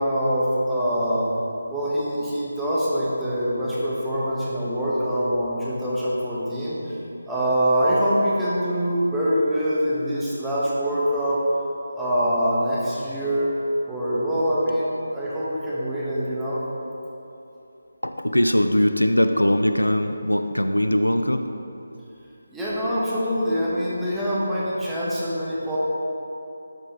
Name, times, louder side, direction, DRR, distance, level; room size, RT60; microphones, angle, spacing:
voice 1, 0.0-1.3 1.7-6.8 7.3-11.4 12.0-13.5 13.9-16.6 22.5-25.8, equal, 5° right, -9 dB, 1.1 m, -24 dB
voice 2, 18.0-21.5, equal, 90° left, 7 dB, 0.4 m, -21 dB
11.5 x 4.7 x 3.0 m, 2.9 s
figure-of-eight pair, 155°, 0 cm